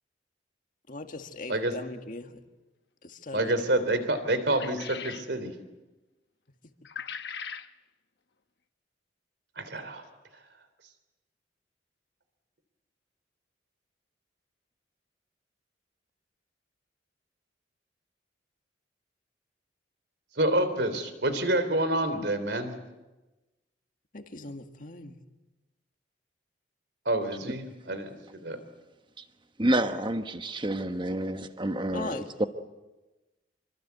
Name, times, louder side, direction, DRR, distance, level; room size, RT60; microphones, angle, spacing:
voice 1, 0.9-2.4 3.0-3.5 3.8-3.9 24.1-25.2 31.9-32.5, left 2 dB, 45° left, 6 dB, 1.9 m, -40 dB
voice 2, 3.3-5.6 9.6-10.0 20.4-22.8 27.0-28.6, right 1 dB, 65° right, 10 dB, 3.3 m, -28 dB
sound 1, 4.5-5.3 6.9-7.7, left 7 dB, 65° left, 1.0 m, -39 dB
voice 3, 29.6-32.5, right 1 dB, 25° right, 8 dB, 1.2 m, -29 dB
26.5 x 24.5 x 8.2 m, 1.1 s
head